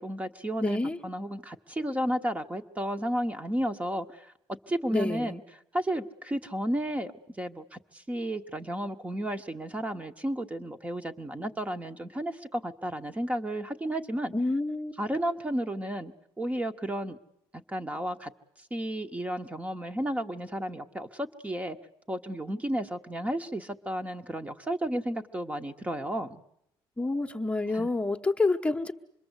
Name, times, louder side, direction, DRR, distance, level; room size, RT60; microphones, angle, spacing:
voice 1, 0.0-4.3 4.7-5.4 5.7-7.1 7.4-14.3 15.0-17.2 17.5-18.3 18.7-21.8 22.1-26.4 27.7-27.9, right 1 dB, 15° right, 6 dB, 1.1 m, -32 dB
voice 2, 0.6-1.0 4.9-5.4 14.3-14.9 27.0-28.9, left 2 dB, 15° left, 6 dB, 1.2 m, -28 dB
26.0 x 22.0 x 8.2 m, 0.75 s
cardioid pair, 125°, 10 cm